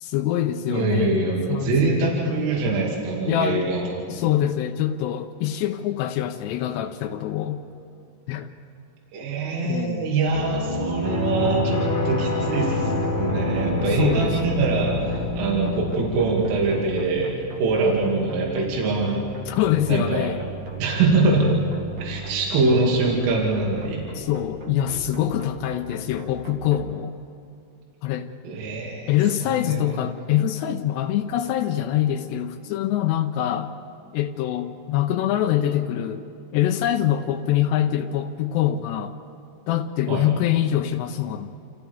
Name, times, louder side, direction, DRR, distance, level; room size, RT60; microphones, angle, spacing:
voice 1, 0.0-1.1 1.5-2.4 3.3-3.6 4.1-7.6 8.3-8.5 9.6-10.1 14.0-14.6 19.5-20.5 24.1-27.2 28.0-28.3 29.1-33.7 34.1-36.3 36.5-39.1 39.7-41.5, left 11 dB, 90° left, 5 dB, 2.4 m, -24 dB
voice 2, 0.7-4.2 9.1-17.3 17.6-19.3 19.9-20.3 20.8-21.5 22.0-24.0 28.4-29.1 29.6-29.8 40.1-40.3, right 3 dB, 75° right, -3 dB, 5.0 m, -23 dB
sound 1, 10.3-16.2, left 2 dB, 40° left, 1.7 m, -26 dB
sound 2, 11.2-26.8, right 2 dB, 50° right, 2.6 m, -37 dB
29.5 x 28.0 x 3.6 m, 2.5 s
omnidirectional pair, 5.9 m